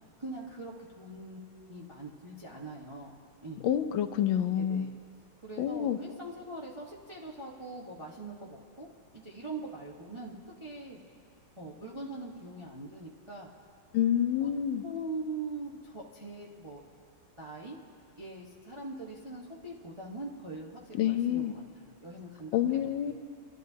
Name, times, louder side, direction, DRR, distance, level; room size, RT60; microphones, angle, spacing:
voice 1, 0.2-3.1 3.4-3.6 4.5-4.9 5.4-8.9 9.1-11.0 11.6-13.5 14.4-14.5 14.8-16.8 17.4-17.8 18.2-23.1, right 2 dB, 20° right, -4 dB, 0.8 m, -42 dB
voice 2, 3.6-4.9 5.6-6.0 13.9-14.8 20.9-21.5 22.5-23.1, left 10 dB, 75° left, 8 dB, 1.3 m, -28 dB
28.5 x 11.5 x 2.8 m, 2.2 s
omnidirectional pair, 2.2 m